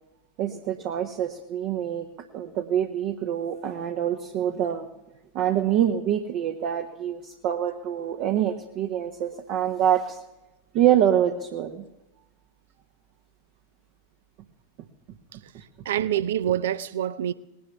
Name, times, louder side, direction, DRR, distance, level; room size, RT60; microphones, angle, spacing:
voice 1, 0.4-4.9 5.3-10.2 10.7-11.8 15.5-15.6, right 10 dB, 40° right, 1.2 m, -25 dB
voice 2, 15.4-17.3, right 11 dB, 60° right, 0.7 m, -27 dB
19.5 x 10.5 x 7.2 m
figure-of-eight pair, 90°, 0 cm